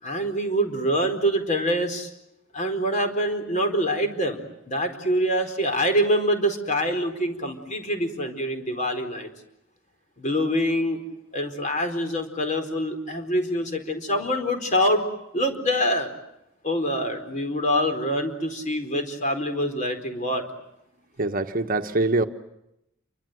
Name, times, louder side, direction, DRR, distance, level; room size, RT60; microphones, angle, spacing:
voice 1, 0.0-2.1 2.5-4.4 4.7-9.3 10.2-11.0 11.3-15.0 15.3-16.1 16.6-20.4, equal, 40° left, 4.4 m, -25 dB
voice 2, 21.2-22.3, right 2 dB, 45° right, 1.2 m, -23 dB
29.0 x 24.5 x 7.9 m
head